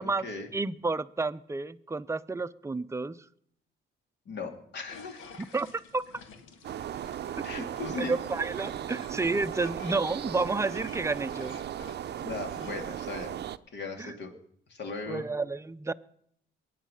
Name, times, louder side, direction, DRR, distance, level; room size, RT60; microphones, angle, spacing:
voice 1, 0.0-0.5 4.3-5.2 7.4-8.2 12.2-13.4 13.7-14.3 14.7-15.3, left 3 dB, 60° left, 2.7 m, -38 dB
voice 2, 0.5-3.2 5.5-6.0 7.9-11.5 14.0-14.1 15.1-15.9, right 3 dB, 15° right, 0.6 m, -30 dB
sound 1, 4.9-12.8, left 5 dB, 90° left, 1.6 m, -52 dB
sound 2, 6.6-13.6, right 10 dB, 55° right, 0.6 m, -37 dB
21.0 x 9.5 x 5.7 m
cardioid pair, 90°, 20 cm